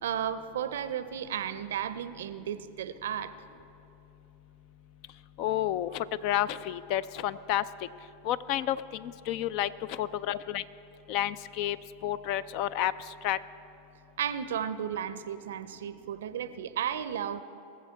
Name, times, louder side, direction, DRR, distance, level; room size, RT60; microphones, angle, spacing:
voice 1, 0.0-3.3 14.2-17.4, right 9 dB, 70° right, 12 dB, 0.5 m, -34 dB
voice 2, 5.4-7.6 8.2-10.6 11.1-11.8 12.0-12.9 13.2-13.4, left 12 dB, 55° left, 17 dB, 0.4 m, -30 dB
19.5 x 7.3 x 4.6 m, 2.7 s
hypercardioid pair, 95°, 0 cm